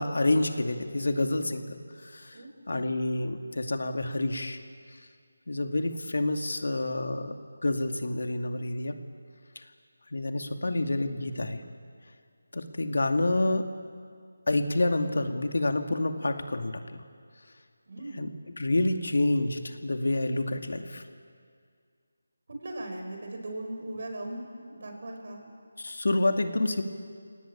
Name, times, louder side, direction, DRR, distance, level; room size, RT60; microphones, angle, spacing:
voice 1, 0.0-1.8 2.1-2.4 2.7-4.6 5.5-7.3 7.6-9.0 10.1-11.6 12.5-13.7 14.5-17.0 18.2-21.0 25.8-26.8, left 2 dB, 70° left, 6 dB, 2.4 m, -28 dB
voice 2, 2.3-2.9 17.9-18.3 22.6-25.5, right 1 dB, 50° right, 4 dB, 5.7 m, -39 dB
29.0 x 18.5 x 8.7 m, 2.1 s
figure-of-eight pair, 170°, 0 cm